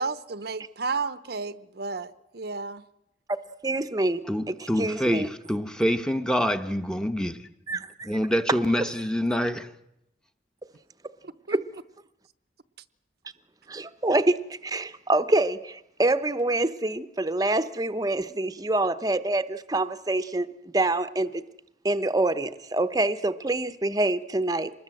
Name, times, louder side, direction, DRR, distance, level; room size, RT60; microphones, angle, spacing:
voice 1, 0.0-2.8 11.2-11.6, right 4 dB, 55° right, 0.8 m, -32 dB
voice 2, 3.6-4.2 4.5-5.3 7.7-8.2 11.5-11.6 13.7-20.5 20.7-21.4 21.8-24.7, right 2 dB, 20° right, 0.8 m, -26 dB
voice 3, 4.3-7.5 8.1-9.7, equal, 5° left, 0.9 m, -26 dB
25.0 x 20.5 x 7.7 m
head